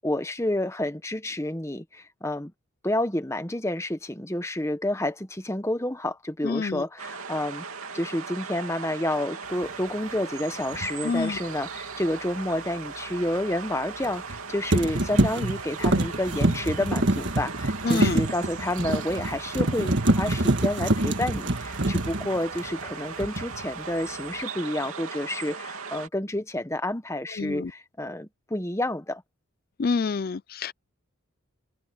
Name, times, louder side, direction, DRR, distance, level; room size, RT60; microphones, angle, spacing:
voice 1, 0.0-2.5 2.8-7.6 7.9-29.2, left 1 dB, 15° left, 1.1 m, -29 dB
voice 2, 6.4-6.8 11.0-11.4 17.8-18.2 27.3-27.7 29.8-30.7, left 4 dB, 45° left, 0.4 m, -27 dB
sound 1, 7.0-26.1, right 5 dB, 85° right, 2.9 m, -38 dB
sound 2, 10.7-10.9 14.0-14.4 14.7-22.9 23.2-23.6, right 1 dB, 55° right, 1.7 m, -25 dB
head